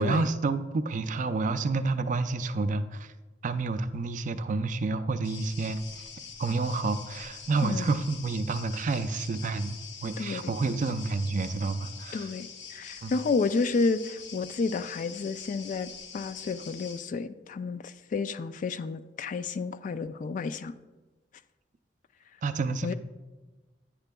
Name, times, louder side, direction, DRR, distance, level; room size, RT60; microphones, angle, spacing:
voice 1, 0.0-3.1 3.4-5.8 6.4-9.7 10.0-12.3 13.0-13.1 22.4-22.9, right 3 dB, 45° right, 11 dB, 0.4 m, -29 dB
sound 1, 5.2-17.0, left 6 dB, 85° left, 0.8 m, -45 dB
voice 2, 7.6-7.9 10.2-10.5 12.1-20.7 22.8-22.9, left 4 dB, 45° left, 14 dB, 0.3 m, -31 dB
10.5 x 9.0 x 2.3 m, 1.2 s
head